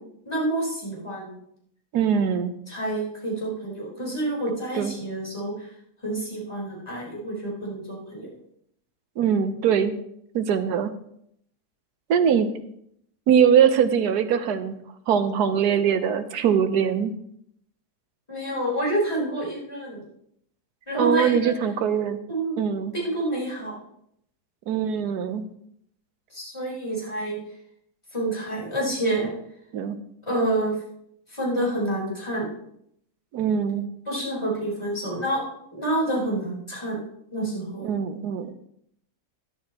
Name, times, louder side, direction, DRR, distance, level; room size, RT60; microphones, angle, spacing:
voice 1, 0.3-1.3 2.7-5.5 6.0-8.3 18.3-20.0 20.9-21.5 22.3-22.6 22.9-23.7 26.3-27.4 28.1-29.3 30.3-30.7 31.3-32.5 34.1-35.4 35.7-37.0 37.3-37.9, right 1 dB, 15° left, -5 dB, 4.1 m, -28 dB
voice 2, 1.9-2.5 4.7-5.0 9.2-9.9 10.3-10.9 12.1-12.5 13.3-14.8 15.1-17.1 20.9-22.2 22.6-22.9 24.7-25.4 29.7-30.0 33.3-33.9 37.8-38.5, right 7 dB, 80° right, 9 dB, 1.4 m, -22 dB
13.0 x 11.5 x 2.9 m, 0.71 s
omnidirectional pair, 1.7 m